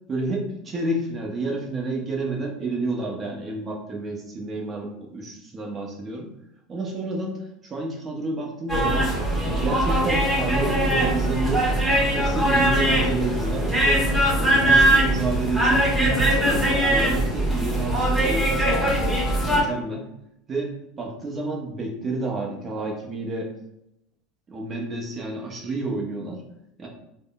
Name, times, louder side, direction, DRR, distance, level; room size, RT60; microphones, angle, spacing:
voice 1, 0.1-6.3 6.7-7.4 7.6-9.1 9.5-11.6 12.1-14.1 14.4-19.2 19.5-20.1 20.5-23.5 24.5-26.4 26.8-26.9, right 2 dB, 30° right, -1 dB, 0.7 m, -29 dB
sound 1, 8.7-19.6, right 1 dB, 10° right, 1.3 m, -21 dB
3.6 x 2.1 x 2.3 m, 0.83 s
hypercardioid pair, 95°, 0 cm